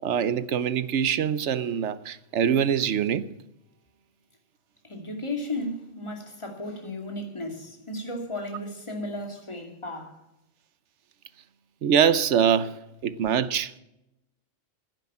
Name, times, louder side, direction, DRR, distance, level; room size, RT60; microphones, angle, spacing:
voice 1, 0.0-3.3 11.8-12.7 13.0-13.7, right 8 dB, 70° right, 1.1 m, -24 dB
voice 2, 4.8-10.2, left 1 dB, 25° left, 2.6 m, -34 dB
11.0 x 10.0 x 8.7 m
omnidirectional pair, 1.3 m